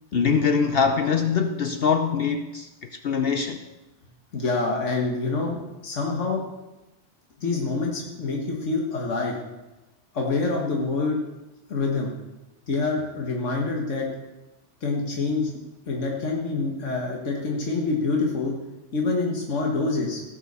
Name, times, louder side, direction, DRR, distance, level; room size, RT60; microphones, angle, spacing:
voice 1, 0.1-2.7 3.0-3.6, left 6 dB, 60° left, 0.8 m, -23 dB
voice 2, 4.3-6.4 7.4-9.4 10.1-11.2 11.7-12.1 12.7-14.1 14.8-15.5 15.9-18.5 18.9-20.2, left 3 dB, 85° left, 1.9 m, -26 dB
16.5 x 6.1 x 6.7 m
omnidirectional pair, 1.2 m